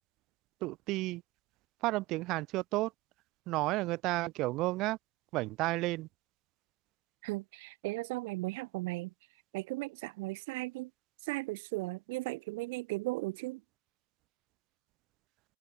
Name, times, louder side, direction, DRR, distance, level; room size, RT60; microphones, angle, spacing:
voice 1, 0.6-1.2 1.8-2.9 3.5-5.0 5.3-6.1, right 20 dB, 45° right, 3.2 m, -32 dB
voice 2, 7.2-9.1 9.5-10.9 11.2-13.6, right 23 dB, 60° right, 3.8 m, -36 dB
hypercardioid pair, 130°, 0 cm